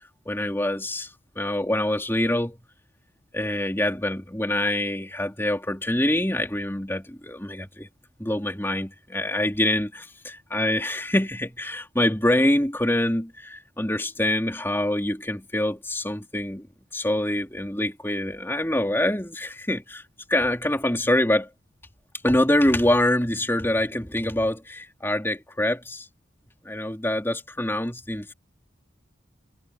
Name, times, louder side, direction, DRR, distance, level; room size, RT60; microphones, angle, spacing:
voice 1, 0.2-2.6 3.3-7.9 8.2-16.7 16.9-20.0 20.3-21.5 22.2-26.1 26.6-28.3, left 1 dB, 10° left, 3.4 m, -25 dB
head